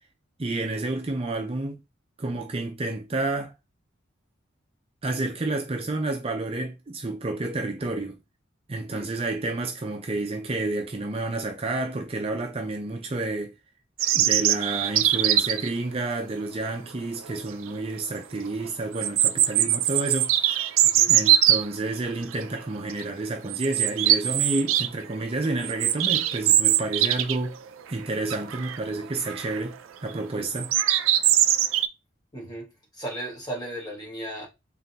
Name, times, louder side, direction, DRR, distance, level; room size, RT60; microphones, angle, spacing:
voice 1, 0.4-1.8 2.2-3.5 5.0-8.2 8.7-13.5 14.1-20.7 21.1-27.6 27.9-29.8 30.0-30.7, right 2 dB, 30° right, 0.5 m, -30 dB
sound 1, 14.0-15.7 17.2-17.3 17.7-17.8 18.9-21.6 22.3-22.6 22.9-23.0 23.5-24.9 25.2-27.5 27.8-27.9 28.3-28.8 29.2-29.6 30.5-31.9, right 12 dB, 90° right, 0.4 m, -22 dB
voice 2, 32.3-32.7 32.9-34.5, right 1 dB, 20° left, 1.4 m, -36 dB
3.8 x 3.7 x 2.8 m
head